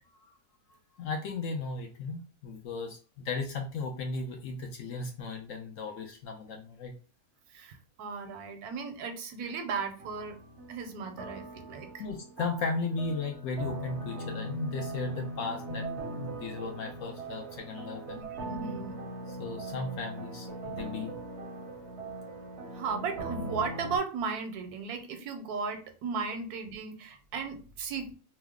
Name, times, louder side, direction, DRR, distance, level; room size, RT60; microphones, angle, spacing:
voice 1, 0.9-6.9 12.0-18.2 19.3-21.1, left 3 dB, 70° left, 3 dB, 0.8 m, -36 dB
voice 2, 7.5-10.4 10.7-12.0 18.1-18.9 22.0-22.1 22.7-28.1, right 5 dB, 80° right, 6 dB, 1.1 m, -36 dB
sound 1, 10.0-24.0, right 2 dB, 60° right, 0.8 m, -40 dB
2.9 x 2.0 x 3.4 m, 0.37 s
omnidirectional pair, 1.6 m